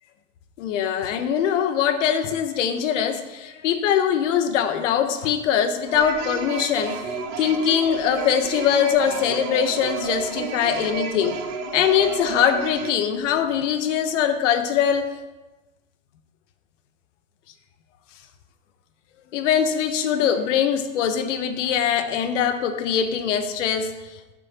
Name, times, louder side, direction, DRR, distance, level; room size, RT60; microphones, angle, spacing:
voice 1, 0.6-11.4 11.7-15.1 19.3-24.3, left 8 dB, 65° left, 9 dB, 1.1 m, -22 dB
sound 1, 5.9-12.9, right 5 dB, 60° right, 1.6 m, -31 dB
14.0 x 6.4 x 2.9 m, 1.1 s
hypercardioid pair, 100°, 39 cm